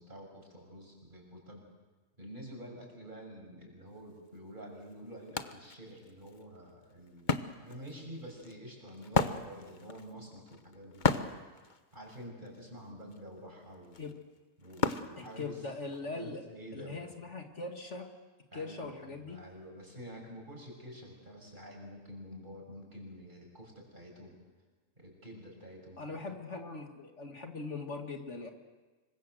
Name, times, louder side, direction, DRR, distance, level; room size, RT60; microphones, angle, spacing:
voice 1, 0.0-1.6 2.2-11.4 11.9-14.0 14.6-15.6 16.0-17.1 18.5-24.4 25.0-26.3, equal, 40° right, 0 dB, 6.6 m, -48 dB
Wood, 4.3-4.4 4.8-16.0, left 4 dB, 40° left, 1.1 m, -36 dB
voice 2, 15.2-16.4 16.7-18.1 18.5-19.4 26.0-28.5, left 3 dB, 60° left, 4 dB, 2.3 m, -41 dB
26.5 x 24.0 x 7.8 m, 1.3 s
omnidirectional pair, 1.4 m